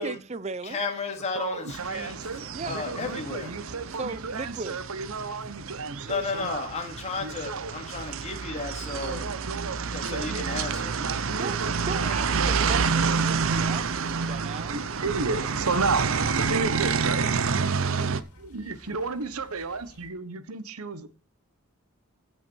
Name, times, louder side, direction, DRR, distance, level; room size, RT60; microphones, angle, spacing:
voice 1, 0.0-0.8 2.5-2.8 3.9-4.8 11.4-14.7, right 4 dB, 30° right, 0.5 m, -36 dB
voice 2, 0.6-3.5 6.0-9.3 9.9-11.0, left 4 dB, 30° left, 2.5 m, -34 dB
voice 3, 1.3-6.7 7.2-7.7 9.0-13.2 14.7-17.3 18.4-21.1, right 4 dB, 80° right, 1.1 m, -33 dB
sound 1, 1.7-18.2, right 5 dB, 65° right, 0.7 m, -29 dB
sound 2, 2.8-20.1, left 1 dB, 90° left, 2.8 m, -53 dB
15.5 x 5.8 x 4.6 m
head